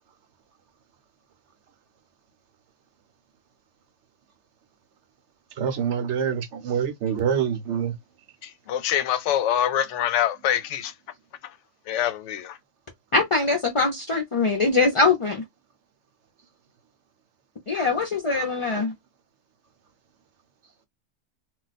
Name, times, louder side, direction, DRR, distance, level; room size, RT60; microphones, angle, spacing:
voice 1, 5.6-7.9, right 7 dB, 65° right, 1.0 m, -26 dB
voice 2, 8.4-10.9 11.9-12.6, left 10 dB, 70° left, 0.8 m, -25 dB
voice 3, 13.1-15.4 17.7-18.9, left 3 dB, 40° left, 0.4 m, -22 dB
2.4 x 2.2 x 3.9 m
omnidirectional pair, 1.4 m